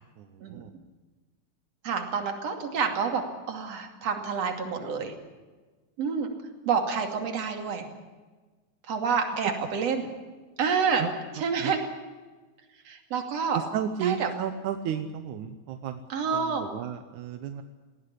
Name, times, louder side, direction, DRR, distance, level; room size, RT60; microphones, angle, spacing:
voice 1, 0.2-0.7 9.4-9.5 11.0-11.1 11.6-11.7 13.5-16.0 16.3-17.6, right 9 dB, 85° right, 9 dB, 2.4 m, -33 dB
voice 2, 1.8-5.1 6.0-6.3 6.7-7.8 8.9-10.1 10.6-11.0 11.3-11.8 12.9-13.6 14.0-14.3 16.1-16.6, right 6 dB, 60° right, 5 dB, 3.6 m, -28 dB
19.5 x 17.5 x 10.0 m, 1.3 s
omnidirectional pair, 3.4 m